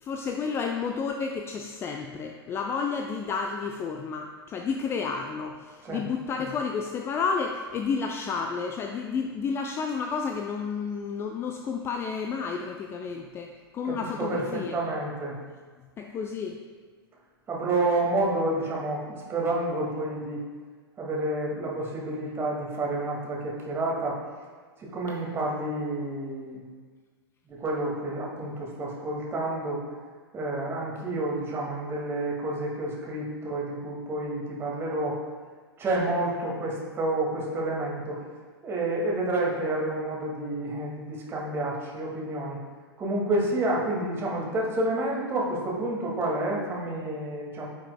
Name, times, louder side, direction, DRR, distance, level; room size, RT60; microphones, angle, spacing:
voice 1, 0.0-14.8 16.0-16.6, left 5 dB, 20° left, 3 dB, 0.4 m, -31 dB
voice 2, 13.8-15.4 17.5-20.4 21.0-24.2 24.8-26.6 27.5-29.8 30.3-35.2 35.8-38.2 38.6-42.6 43.0-47.7, right 2 dB, 20° right, -3 dB, 2.1 m, -29 dB
14.5 x 5.7 x 2.3 m, 1.5 s
figure-of-eight pair, 105°, 13 cm